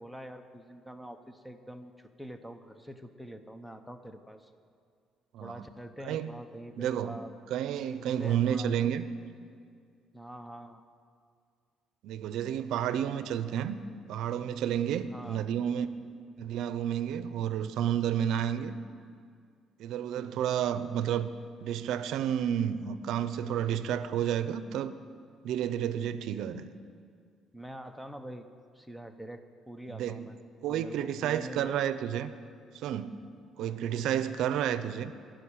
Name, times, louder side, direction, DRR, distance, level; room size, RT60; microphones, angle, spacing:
voice 1, 0.0-4.5 5.4-7.3 7.9-8.8 10.1-10.8 15.1-15.5 20.1-20.4 27.5-28.5 28.7-30.4 30.7-31.8 33.6-33.8, right 1 dB, ahead, 8 dB, 0.7 m, -45 dB
voice 2, 6.8-7.2 7.5-9.1 12.0-13.8 14.1-15.9 16.4-18.8 19.8-21.3 21.6-24.9 25.4-26.7 30.0-30.3 30.6-32.3 32.7-33.2 33.6-35.1, right 9 dB, 70° right, 12 dB, 0.6 m, -31 dB
15.0 x 6.3 x 9.9 m, 2.2 s
cardioid pair, 150°, 0 cm